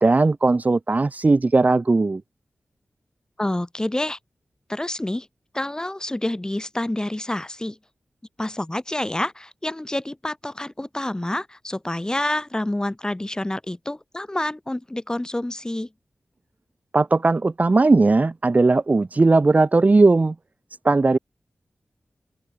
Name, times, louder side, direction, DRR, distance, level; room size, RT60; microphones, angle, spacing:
voice 1, 0.0-2.2 16.9-20.3 20.8-21.2, right 3 dB, 40° right, 1.3 m, -18 dB
voice 2, 3.4-4.2 4.7-5.3 5.5-7.8 8.4-15.9, left 1 dB, 20° left, 3.7 m, -28 dB
cardioid pair, 60°, 4 cm